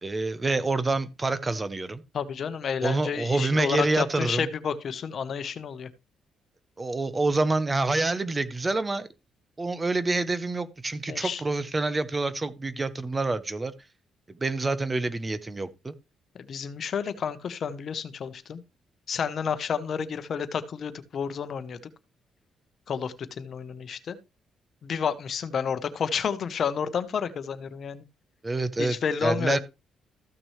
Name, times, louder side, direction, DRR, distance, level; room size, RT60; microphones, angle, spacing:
voice 1, 0.0-2.0 2.8-4.5 6.8-9.1 9.6-13.7 14.3-15.9 28.4-29.0 29.2-29.6, right 3 dB, 25° right, 0.8 m, -27 dB
voice 2, 2.1-5.9 11.1-11.4 16.3-18.6 19.1-21.8 22.9-24.2 24.8-28.0 28.8-29.6, left 7 dB, 55° left, 0.9 m, -30 dB
14.0 x 6.0 x 3.2 m
cardioid pair, 90°, 0 cm